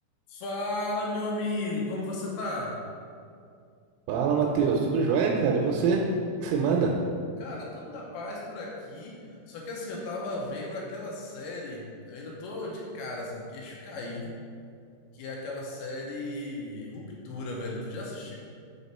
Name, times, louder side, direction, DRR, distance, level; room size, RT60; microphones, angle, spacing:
voice 1, 0.3-2.8 7.4-14.3 15.1-18.4, left 2 dB, 80° left, -3 dB, 2.9 m, -35 dB
voice 2, 4.1-6.0 6.4-6.9, right 5 dB, 85° right, 0 dB, 3.0 m, -24 dB
6.8 x 4.1 x 4.1 m, 2.3 s
omnidirectional pair, 5.4 m